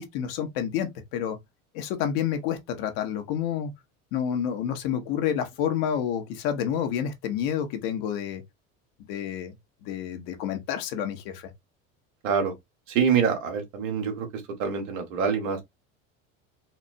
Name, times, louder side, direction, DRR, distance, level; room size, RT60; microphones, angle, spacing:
voice 1, 0.0-1.4 1.7-3.7 4.1-8.4 9.1-9.5 9.8-11.5, left 9 dB, 65° left, 1.0 m, -29 dB
voice 2, 12.2-12.5 12.9-14.3 14.6-15.6, right 6 dB, 80° right, 1.4 m, -25 dB
4.3 x 2.0 x 2.5 m
supercardioid pair, 90°, 39 cm